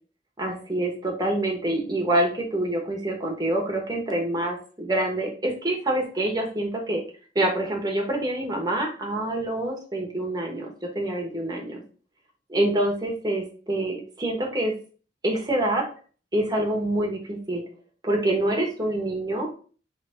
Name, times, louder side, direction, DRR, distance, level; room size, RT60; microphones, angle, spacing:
voice 1, 0.4-7.0 7.3-11.8 12.5-14.7 15.2-15.8 16.3-17.6 18.0-19.5, right 1 dB, 20° right, 0 dB, 1.2 m, -26 dB
3.6 x 3.4 x 4.3 m, 0.40 s
head